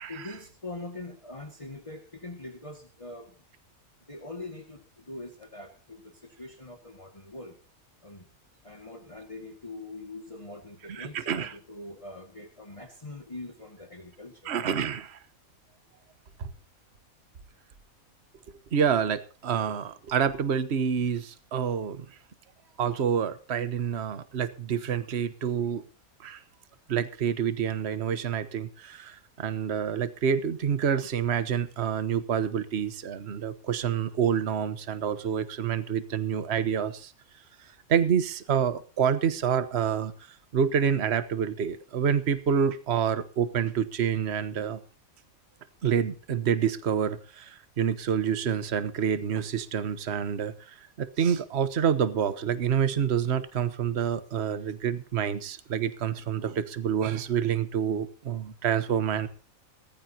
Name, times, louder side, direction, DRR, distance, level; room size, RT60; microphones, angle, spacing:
voice 1, 0.1-3.4 4.1-7.6 8.0-8.3 8.6-14.5, left 2 dB, 25° left, 2.1 m, -43 dB
voice 2, 10.9-11.5 14.4-15.2 16.4-16.5 18.7-22.1 22.8-25.8 26.2-26.4 26.9-37.1 37.9-40.1 40.5-44.8 45.8-59.3, right 8 dB, 50° right, 1.3 m, -27 dB
19.5 x 14.5 x 2.9 m
omnidirectional pair, 1.5 m